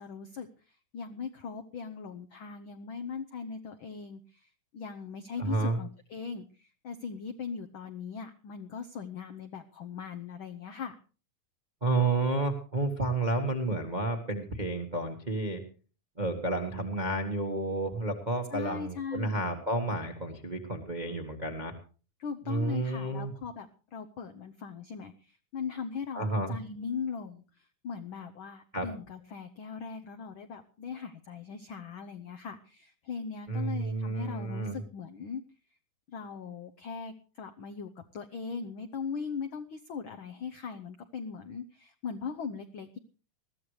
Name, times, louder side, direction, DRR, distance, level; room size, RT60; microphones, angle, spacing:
voice 1, 0.0-4.5 4.7-10.9 18.5-19.4 22.2-35.4 36.1-43.0, left 6 dB, 85° left, 6 dB, 1.1 m, -39 dB
voice 2, 5.4-5.8 11.8-15.6 16.2-21.7 22.5-23.3 26.1-26.6 28.7-28.9 33.5-34.8, right 2 dB, 35° right, 3 dB, 0.7 m, -31 dB
20.5 x 14.0 x 3.2 m, 0.36 s
omnidirectional pair, 3.5 m